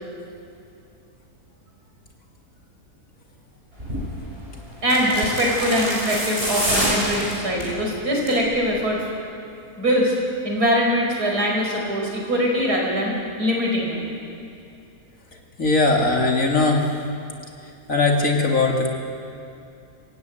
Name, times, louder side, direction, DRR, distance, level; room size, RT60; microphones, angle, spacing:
sound 1, 3.8-4.0 4.8-7.7 8.1-8.5 8.7-8.8, equal, 40° right, 7.4 m, -26 dB
voice 1, 4.8-9.0 9.8-10.1 10.4-14.0, equal, 80° right, -1 dB, 5.9 m, -22 dB
voice 2, 15.6-16.9 17.9-18.9, left 3 dB, 55° left, 0 dB, 3.1 m, -19 dB
27.5 x 16.5 x 9.4 m, 2.6 s
omnidirectional pair, 1.7 m